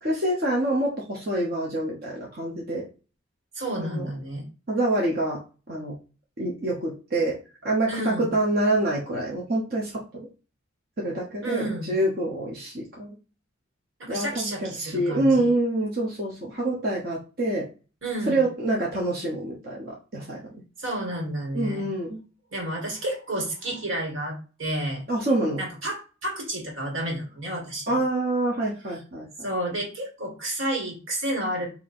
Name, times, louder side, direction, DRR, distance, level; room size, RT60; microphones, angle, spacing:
voice 1, 0.0-2.9 3.7-4.1 4.7-5.4 5.7-6.0 6.4-10.3 11.0-13.1 14.1-17.7 18.3-20.4 21.5-22.2 25.1-25.6 27.9-29.3, right 1 dB, 45° right, -3 dB, 0.9 m, -26 dB
voice 2, 3.6-4.4 7.9-8.3 11.4-11.9 14.0-15.5 18.0-18.4 20.8-21.9 22.5-25.0 25.6-28.0 29.4-31.7, right 1 dB, 75° right, -1 dB, 1.9 m, -30 dB
3.6 x 2.9 x 4.2 m, 0.34 s
head